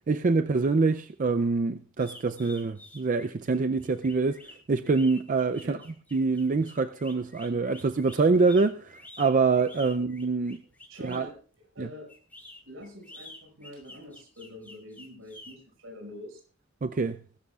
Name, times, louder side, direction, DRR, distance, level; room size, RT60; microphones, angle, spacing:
voice 1, 0.1-4.4 4.7-5.8 6.1-10.6 11.0-11.3 11.8-11.9 16.8-17.2, right 4 dB, 40° right, 0.5 m, -25 dB
sound 1, 2.0-11.3 12.1-15.5, left 1 dB, 10° left, 3.8 m, -49 dB
voice 2, 10.9-11.3 11.7-12.1 12.7-16.4, left 1 dB, 80° right, 5.9 m, -45 dB
20.5 x 13.0 x 2.4 m
head